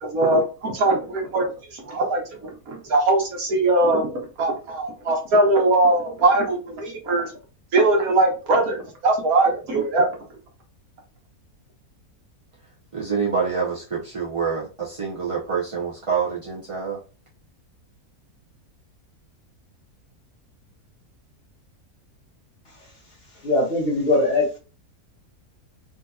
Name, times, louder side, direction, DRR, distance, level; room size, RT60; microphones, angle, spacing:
voice 1, 0.0-7.3 7.7-10.1, right 2 dB, 75° right, 1.5 m, -21 dB
voice 2, 12.9-17.0, right 6 dB, 40° right, 0.5 m, -26 dB
voice 3, 23.4-24.6, left 2 dB, 45° left, 1.4 m, -21 dB
3.8 x 2.7 x 2.3 m
omnidirectional pair, 1.6 m